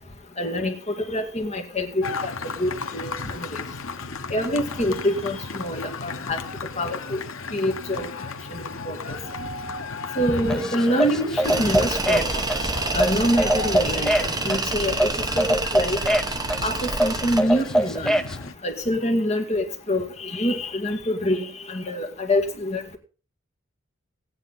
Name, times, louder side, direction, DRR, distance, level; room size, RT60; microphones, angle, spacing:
voice 1, 0.4-2.3 2.6-3.6 4.3-6.4 6.8-7.2 7.5-8.1 8.5-9.2 10.2-12.7 12.9-15.1 15.3-16.2 16.6-18.2 18.6-23.0, left 1 dB, 35° left, 4 dB, 2.1 m, -26 dB
sound 1, 2.0-18.5, left 4 dB, 90° left, 1.1 m, -35 dB
sound 2, 10.5-18.3, right 1 dB, 5° left, 0.6 m, -23 dB
Tools, 11.4-17.4, right 3 dB, 20° right, 1.1 m, -28 dB
16.5 x 9.6 x 4.1 m, 0.36 s
head